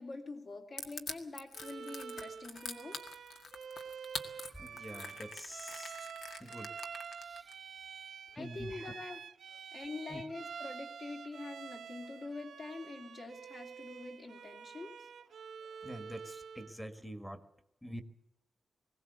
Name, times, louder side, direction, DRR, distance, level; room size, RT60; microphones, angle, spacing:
voice 1, 0.0-3.0 8.4-9.2 9.7-15.1, left 3 dB, 45° left, 2 dB, 2.6 m, -45 dB
Crushing, 0.8-7.5, left 4 dB, 75° left, 1.9 m, -44 dB
Bowed string instrument, 1.5-16.8, right 6 dB, 70° right, 0.8 m, -48 dB
voice 2, 4.6-6.1 6.4-6.7 7.2-7.5 8.3-8.9 10.1-10.2 15.6-17.4 17.8-18.0, equal, 5° left, 9 dB, 1.4 m, -46 dB
21.0 x 17.5 x 8.0 m, 0.81 s
wide cardioid pair, 160°, 0 cm